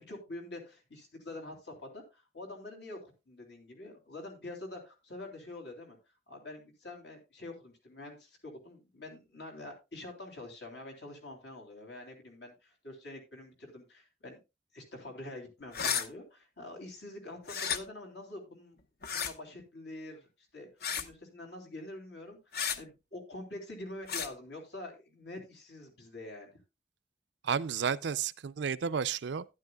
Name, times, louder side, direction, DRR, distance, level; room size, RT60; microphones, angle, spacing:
voice 1, 0.0-6.0 6.3-14.4 14.7-18.8 19.1-20.7 21.0-26.5, left 2 dB, 75° left, 3.2 m, -46 dB
sound 1, 15.7-16.1 17.5-17.8 19.0-19.3 20.8-21.1 22.5-22.8 24.1-24.3, left 7 dB, 60° left, 0.8 m, -32 dB
voice 2, 27.4-29.5, right 7 dB, 80° right, 0.4 m, -32 dB
12.0 x 10.5 x 2.3 m
head